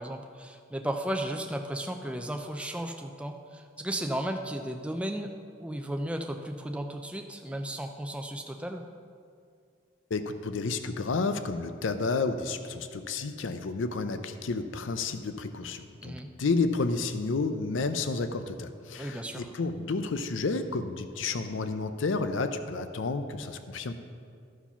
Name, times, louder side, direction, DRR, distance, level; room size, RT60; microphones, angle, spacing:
voice 1, 0.0-5.3 5.6-8.8 16.0-16.3 19.0-19.5, right 1 dB, 5° right, 4 dB, 0.4 m, -34 dB
voice 2, 10.1-23.9, left 3 dB, 85° left, 9 dB, 0.6 m, -31 dB
13.0 x 4.8 x 5.6 m, 2.3 s
head